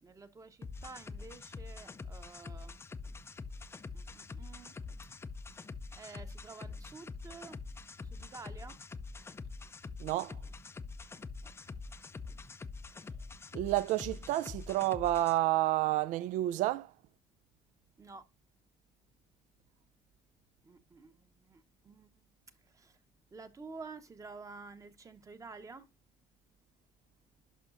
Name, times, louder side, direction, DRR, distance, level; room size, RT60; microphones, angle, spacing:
voice 1, 0.0-2.7 3.9-4.7 5.9-7.6 8.0-8.8 11.4-11.5 18.0-18.2 20.6-22.3 22.6-23.0 23.3-25.9, right 4 dB, 25° right, 0.9 m, -50 dB
sound 1, 0.6-15.4, left 4 dB, 20° left, 0.4 m, -45 dB
voice 2, 10.0-10.4 13.5-16.9, right 15 dB, 65° right, 0.4 m, -30 dB
11.0 x 5.5 x 2.5 m
cardioid pair, 110°, 14 cm